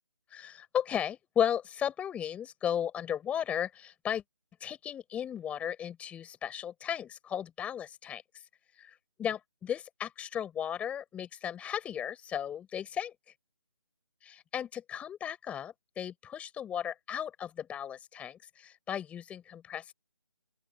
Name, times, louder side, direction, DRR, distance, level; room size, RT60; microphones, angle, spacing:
voice 1, 0.3-4.2 4.6-8.5 8.7-13.3 14.3-19.9, left 9 dB, 10° left, 5.3 m, -35 dB
open air
figure-of-eight pair, 155°, 16 cm